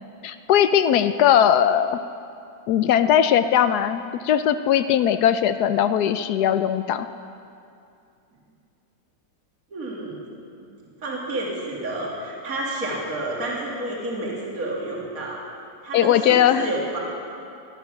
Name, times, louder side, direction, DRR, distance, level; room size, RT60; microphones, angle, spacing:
voice 1, 0.2-2.0 2.7-7.1 15.9-16.7, left 9 dB, 70° left, 11 dB, 1.0 m, -19 dB
voice 2, 9.7-10.3 10.6-10.7 11.0-15.4 15.8-17.0, right 1 dB, 50° right, -3 dB, 2.6 m, -30 dB
17.5 x 12.0 x 5.8 m, 2.5 s
omnidirectional pair, 2.0 m